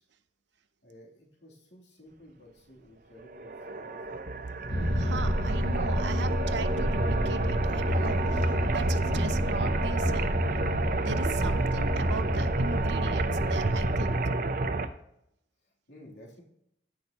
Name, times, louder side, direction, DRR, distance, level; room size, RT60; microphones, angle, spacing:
voice 1, 0.8-4.2 15.9-16.4, equal, 75° left, -2 dB, 3.1 m, -53 dB
sound 1, 3.3-14.9, right 2 dB, 50° right, 0.6 m, -30 dB
sound 2, 4.7-14.2, left 1 dB, 60° left, 1.2 m, -30 dB
voice 2, 4.9-10.4 11.0-14.2, right 4 dB, 80° right, 11 dB, 0.8 m, -38 dB
15.0 x 6.4 x 2.9 m, 0.77 s
head